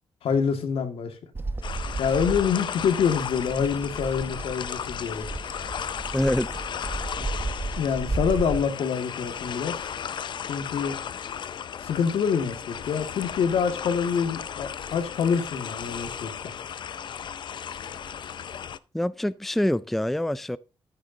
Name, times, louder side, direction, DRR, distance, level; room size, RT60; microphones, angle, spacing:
voice 1, 0.2-1.2 2.0-5.3 7.8-9.8 10.5-11.0 11.8-16.5, left 6 dB, 80° left, 2.1 m, -26 dB
Bird vocalization bird call bird song, 1.3-8.6, right 3 dB, 20° right, 0.9 m, -34 dB
sound 1, 1.6-18.8, left 8 dB, 55° left, 0.6 m, -35 dB
voice 2, 6.1-6.6 7.2-7.3 18.9-20.6, left 1 dB, ahead, 0.4 m, -25 dB
13.5 x 8.7 x 2.8 m
cardioid pair, 115°, 10 cm